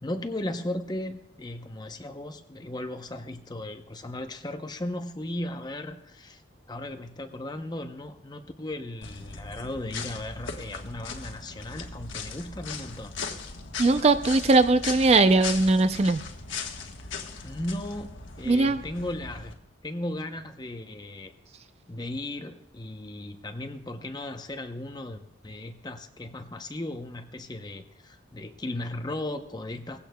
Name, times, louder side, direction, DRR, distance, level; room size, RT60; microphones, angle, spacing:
voice 1, 0.0-6.4 6.7-13.1 17.4-18.1 18.4-19.6 19.8-21.3 21.9-30.0, left 1 dB, 20° left, 7 dB, 0.7 m, -36 dB
sound 1, 9.0-19.5, left 5 dB, 80° left, 1.2 m, -38 dB
voice 2, 13.8-16.2 18.5-18.8, right 3 dB, 35° right, 10 dB, 0.4 m, -20 dB
19.0 x 15.5 x 2.2 m, 0.82 s
head